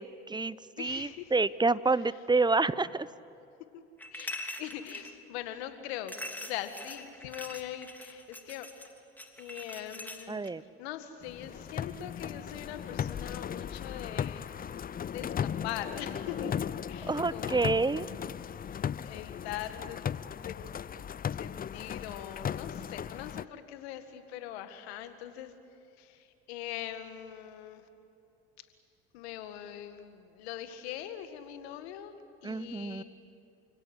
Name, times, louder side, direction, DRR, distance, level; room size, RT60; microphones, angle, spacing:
voice 1, 0.0-3.1 10.3-10.6 17.0-18.1 32.4-33.0, right 3 dB, 15° right, 18 dB, 0.8 m, -28 dB
voice 2, 0.8-1.3 4.1-8.7 9.4-10.5 10.8-14.5 15.0-16.6 16.9-18.1 19.0-20.0 20.4-21.0 21.4-25.5 26.0-27.9 29.1-33.0, left 11 dB, 85° left, 9 dB, 1.9 m, -42 dB
sound 1, 4.0-5.1 6.1-10.5, left 1 dB, 5° left, 3.1 m, -43 dB
sound 2, 11.2-23.5, left 8 dB, 30° left, 0.5 m, -37 dB
29.0 x 17.0 x 9.7 m, 2.7 s
hypercardioid pair, 65°, 31 cm